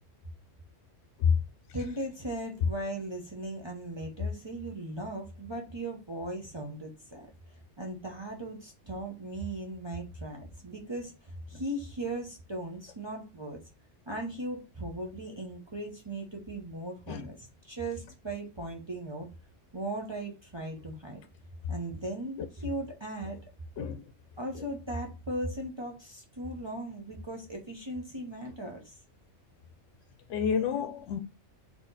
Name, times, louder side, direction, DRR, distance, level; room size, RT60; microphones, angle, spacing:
voice 1, 1.7-7.3 7.8-13.6 14.1-19.3 19.7-21.2 21.7-23.4 24.4-29.0, right 1 dB, 25° right, 0.7 m, -38 dB
voice 2, 30.3-31.2, left 7 dB, 80° left, 0.9 m, -28 dB
4.1 x 2.9 x 4.0 m
omnidirectional pair, 1.2 m